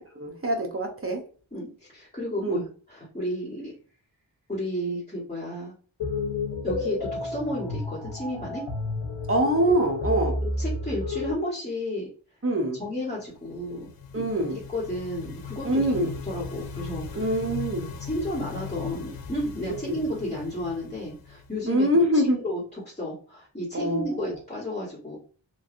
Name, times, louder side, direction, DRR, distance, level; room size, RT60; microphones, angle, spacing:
voice 1, 0.2-1.2 2.4-2.6 9.3-10.4 12.4-12.8 14.1-14.6 15.6-16.1 17.1-17.9 19.7-20.0 21.7-22.4 23.7-24.4, right 1 dB, 30° right, 2 dB, 0.8 m, -24 dB
voice 2, 1.5-2.6 2.9-3.7 4.5-5.7 6.6-8.6 10.4-12.1 12.8-13.9 14.5-15.8 16.3-17.3 18.1-21.9 22.1-25.2, left 1 dB, 15° left, -8 dB, 1.5 m, -32 dB
sound 1, 6.0-11.3, left 2 dB, 70° left, 0.9 m, -31 dB
sound 2, 13.2-22.0, left 6 dB, 50° left, 0.5 m, -39 dB
3.1 x 2.6 x 2.5 m, 0.39 s
wide cardioid pair, 55°, 46 cm